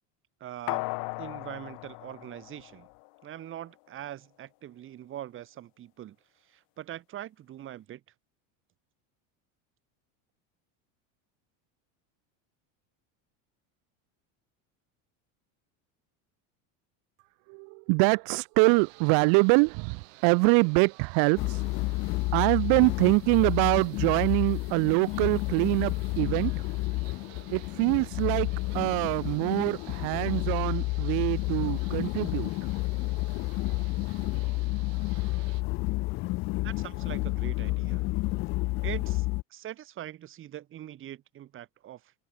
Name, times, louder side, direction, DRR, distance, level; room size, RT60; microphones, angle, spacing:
voice 1, 0.4-0.8 1.2-2.9 3.2-6.2 6.4-8.0 36.6-38.0 38.8-39.3 39.5-42.1, right 12 dB, 30° right, 3.8 m, -42 dB
sound 1, 0.7-3.2 3.6-3.7, left 33 dB, 55° left, 1.9 m, -36 dB
voice 2, 17.5-21.7 22.3-26.5 27.5-32.5, right 40 dB or more, 60° right, 2.5 m, -24 dB
sound 2, 18.6-35.6, right 24 dB, 80° right, 5.8 m, -53 dB
sound 3, 21.4-39.4, left 22 dB, 35° left, 0.5 m, -30 dB
open air
cardioid pair, 165°, 39 cm